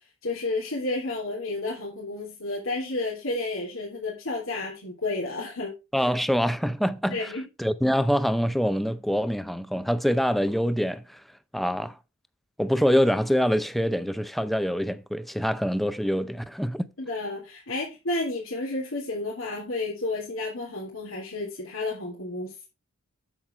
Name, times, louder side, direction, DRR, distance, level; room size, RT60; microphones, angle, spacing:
voice 1, 0.2-6.1 7.1-7.5 17.0-22.7, left 2 dB, 85° left, 3.3 m, -31 dB
voice 2, 5.9-7.3 7.6-11.2 11.5-12.0 12.6-16.9, equal, ahead, 0.5 m, -25 dB
8.9 x 7.5 x 4.5 m
head